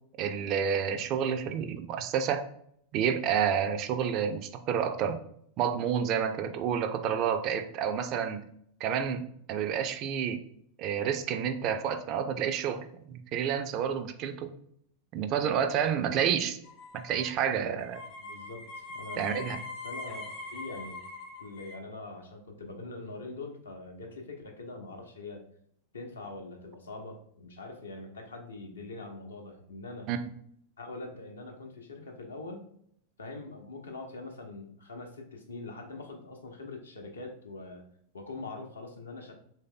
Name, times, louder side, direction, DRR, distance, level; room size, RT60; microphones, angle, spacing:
voice 1, 0.2-2.5 2.9-5.2 5.6-8.4 8.8-9.2 9.5-10.4 10.8-14.5 15.1-16.6 17.0-18.0 19.2-19.6 30.1-30.2, right 8 dB, 40° right, 9 dB, 0.4 m, -29 dB
sound 1, 16.6-21.8, left 3 dB, 40° left, 0.7 m, -43 dB
voice 2, 18.2-19.5 19.8-21.0 21.4-25.4 25.9-30.1 30.8-32.7 33.2-37.8 38.1-39.3, left 3 dB, 70° left, 2 dB, 0.7 m, -43 dB
3.2 x 2.7 x 3.7 m, 0.68 s
figure-of-eight pair, 90°, 0 cm